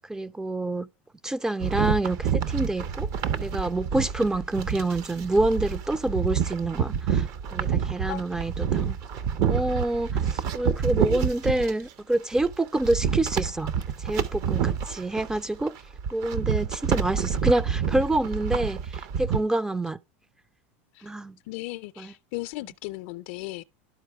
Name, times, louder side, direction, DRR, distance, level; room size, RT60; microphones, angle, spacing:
voice 1, 0.1-0.9 1.2-3.1 3.4-7.3 7.5-9.0 9.5-13.7 14.0-15.8 16.1-20.0 21.0-21.4 22.0-22.1, right 2 dB, 10° right, 0.3 m, -27 dB
sound 1, 1.6-11.7 12.1-19.4, right 7 dB, 55° right, 0.7 m, -28 dB
voice 2, 21.5-23.6, left 20 dB, 65° left, 0.4 m, -36 dB
12.0 x 4.5 x 3.4 m
hypercardioid pair, 100°, 7 cm